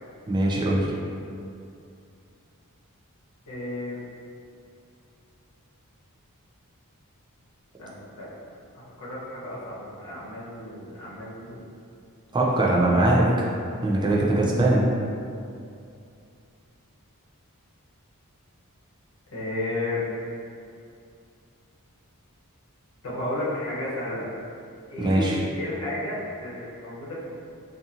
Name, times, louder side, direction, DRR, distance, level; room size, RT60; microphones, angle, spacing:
voice 1, 0.3-0.9 12.3-13.2 13.8-14.9 25.0-25.4, right 1 dB, 20° right, -4 dB, 0.3 m, -21 dB
voice 2, 3.5-4.0 7.8-8.3 8.7-11.6 12.7-13.5 19.3-20.0 23.0-24.3 24.9-27.3, left 1 dB, 80° left, -8 dB, 0.8 m, -33 dB
2.8 x 2.5 x 2.5 m, 2.5 s
head